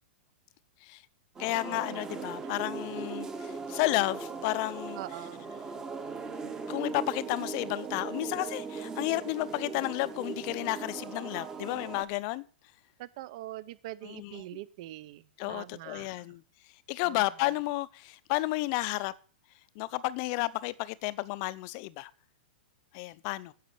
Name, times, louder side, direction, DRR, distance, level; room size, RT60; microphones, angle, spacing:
sound 1, 1.3-12.0, right 4 dB, 10° right, 1.0 m, -39 dB
voice 1, 1.4-5.0 6.7-12.4 14.0-14.4 15.4-16.4 16.9-19.1 19.8-22.1 22.9-23.5, left 20 dB, 30° left, 0.6 m, -32 dB
voice 2, 4.9-5.5 13.0-16.3 17.0-17.3, right 15 dB, 40° right, 0.7 m, -43 dB
10.5 x 7.4 x 8.4 m
supercardioid pair, 175°, 6 cm